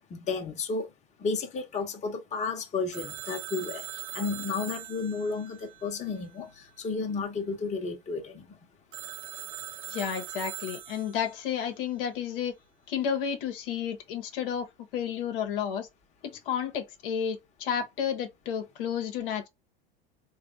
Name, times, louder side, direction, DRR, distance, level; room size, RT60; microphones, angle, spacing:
voice 1, 0.1-0.9 1.2-3.9 4.1-8.4, left 4 dB, 25° left, 1.1 m, -32 dB
Telephone, 2.9-6.6 8.9-11.5, right 13 dB, 55° right, 0.8 m, -41 dB
voice 2, 9.9-12.5 12.9-14.7 14.9-15.9 16.2-19.5, left 8 dB, 65° left, 1.0 m, -31 dB
3.4 x 2.4 x 3.6 m
hypercardioid pair, 95°, 30 cm